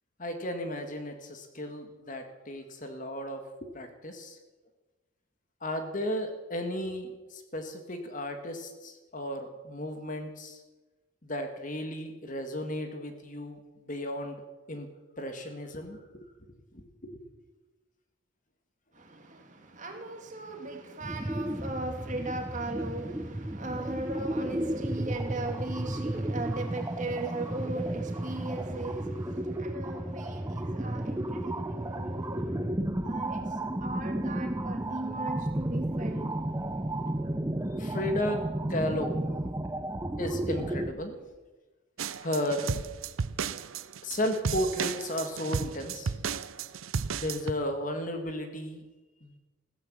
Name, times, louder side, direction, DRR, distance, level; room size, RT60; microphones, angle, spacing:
voice 1, 0.2-4.4 5.6-10.6 11.2-14.4 14.7-14.9 15.2-16.3 16.7-17.2 29.0-29.2 30.8-31.0 31.5-31.7 33.0-33.1 33.4-33.5 37.7-38.4 38.7-39.2 40.2-41.1 42.2-42.7 44.0-46.1 47.1-48.8 49.2-49.4, left 1 dB, 40° left, 1.8 m, -34 dB
voice 2, 18.9-32.7 33.0-36.3, right 2 dB, 35° right, 2.2 m, -38 dB
sound 1, 21.0-40.9, right 1 dB, 15° right, 0.6 m, -33 dB
sound 2, 42.0-47.5, right 5 dB, 80° right, 0.6 m, -34 dB
15.5 x 14.0 x 6.3 m
head